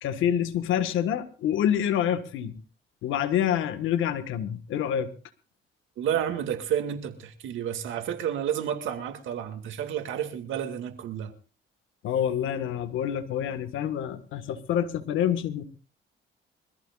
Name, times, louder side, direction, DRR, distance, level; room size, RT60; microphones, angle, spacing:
voice 1, 0.0-2.6 3.0-5.1 12.0-15.6, left 9 dB, 90° left, 1.5 m, -27 dB
voice 2, 6.0-11.3, right 9 dB, 80° right, 2.1 m, -30 dB
24.0 x 14.5 x 2.4 m
cardioid pair, 90°, 20 cm